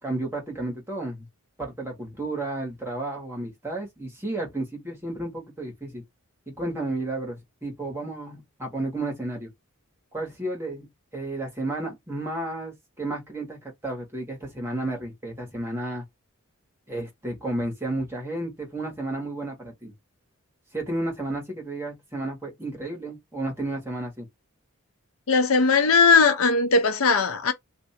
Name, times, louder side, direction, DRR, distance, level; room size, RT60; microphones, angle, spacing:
voice 1, 0.0-1.3 1.6-6.0 6.5-9.5 10.1-10.9 11.1-16.0 16.9-19.9 20.7-24.3, right 2 dB, 10° right, 1.5 m, -32 dB
voice 2, 25.3-27.5, left 4 dB, 75° left, 0.7 m, -19 dB
2.8 x 2.6 x 4.2 m
head